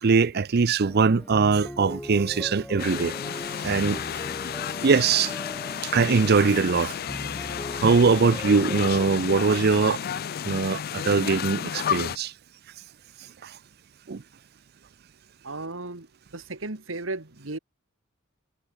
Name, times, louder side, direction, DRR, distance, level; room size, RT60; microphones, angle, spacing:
voice 1, 0.0-3.2 3.6-4.0 4.8-5.3 5.8-7.3 7.7-10.0 10.4-12.3 13.4-13.5 14.1-14.2, right 5 dB, 50° right, 0.5 m, -22 dB
sound 1, 0.8-9.5, equal, 5° left, 1.4 m, -40 dB
sound 2, 2.8-12.2, left 9 dB, 50° left, 0.4 m, -32 dB
voice 2, 15.4-16.1 16.3-17.6, right 2 dB, 70° right, 2.1 m, -35 dB
head